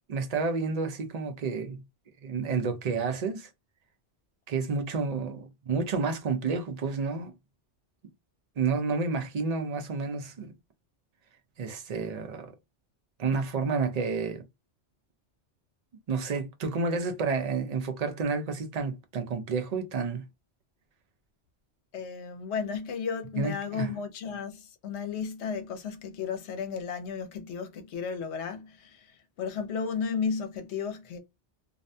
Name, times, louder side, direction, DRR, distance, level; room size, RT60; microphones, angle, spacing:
voice 1, 0.1-1.8 2.2-3.5 4.5-7.3 8.6-10.5 11.6-12.5 13.2-14.4 16.1-20.2 23.4-23.9, right 4 dB, 50° right, 0.5 m, -30 dB
voice 2, 21.9-31.2, left 6 dB, 70° left, 0.9 m, -34 dB
2.5 x 2.2 x 2.6 m
omnidirectional pair, 1.2 m